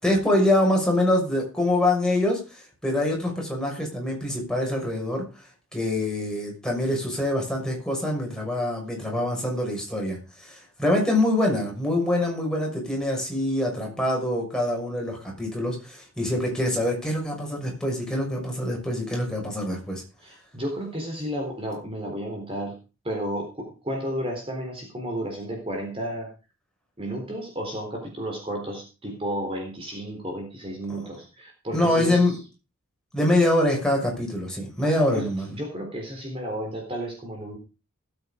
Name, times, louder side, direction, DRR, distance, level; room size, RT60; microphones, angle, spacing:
voice 1, 0.0-5.2 5.7-20.0 31.7-32.3 33.1-35.5, left 1 dB, 5° left, -1 dB, 6.3 m, -25 dB
voice 2, 20.2-22.8 23.0-26.3 27.0-32.4 34.8-37.6, equal, 25° right, 1 dB, 3.8 m, -32 dB
18.5 x 8.9 x 5.1 m, 0.33 s
head